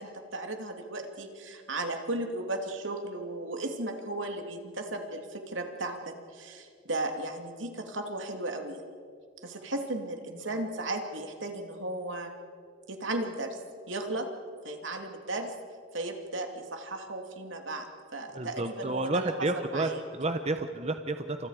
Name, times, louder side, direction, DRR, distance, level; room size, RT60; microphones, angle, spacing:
voice 1, 0.0-9.0 9.4-12.3 12.9-13.6 13.9-14.3 14.6-15.5 15.9-17.9 18.1-20.0, right 2 dB, 75° right, 4 dB, 2.7 m, -35 dB
voice 2, 18.3-21.5, right 2 dB, 35° right, 7 dB, 1.0 m, -31 dB
29.5 x 27.0 x 5.0 m, 2.2 s
head